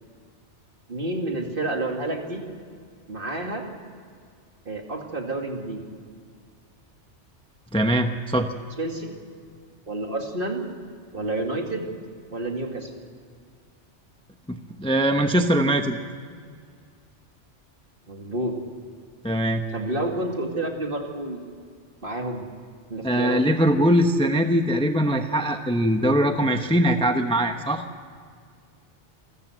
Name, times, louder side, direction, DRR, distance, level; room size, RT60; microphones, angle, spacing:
voice 1, 0.9-2.4 3.1-3.6 4.6-5.9 8.8-9.2 9.9-10.6 11.1-11.9 12.3-12.9 18.1-18.5 19.7-21.4 22.0-22.5 22.9-23.4, right 2 dB, 50° right, 2 dB, 2.6 m, -29 dB
voice 2, 7.7-8.5 14.5-16.0 19.2-19.6 23.0-27.8, equal, 5° left, 6 dB, 0.8 m, -21 dB
28.5 x 14.0 x 8.0 m, 2.1 s
omnidirectional pair, 1.2 m